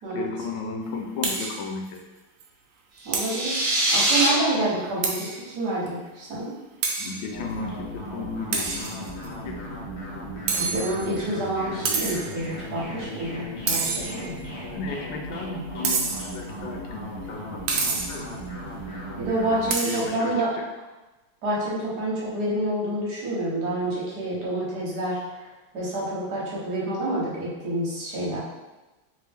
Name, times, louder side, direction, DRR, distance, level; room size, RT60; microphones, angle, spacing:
voice 1, 0.1-2.0 7.0-9.6 14.7-17.8 18.0-18.4 19.8-20.6, left 4 dB, 75° left, 2 dB, 1.1 m, -34 dB
sound 1, 1.2-1.6 2.0-2.1 2.4-2.5 3.1-3.5 5.0-5.4 5.9-6.0 6.8-7.2 8.5-9.3 10.5-11.2 11.9-12.4 13.7-14.4 15.8-16.4 17.7-18.3 19.7-20.1, right 4 dB, 80° right, 1.4 m, -28 dB
sound 2, 3.0-4.3, right 1 dB, 25° right, 0.8 m, -23 dB
voice 2, 3.0-3.6 3.9-5.3 5.5-6.5 10.5-14.3 19.2-20.5 21.4-25.2 25.7-28.4, right 1 dB, 55° right, -6 dB, 1.4 m, -28 dB
sound 3, 7.3-19.7, equal, 50° left, 1.1 m, -36 dB
3.3 x 3.2 x 3.4 m, 1.1 s
omnidirectional pair, 2.3 m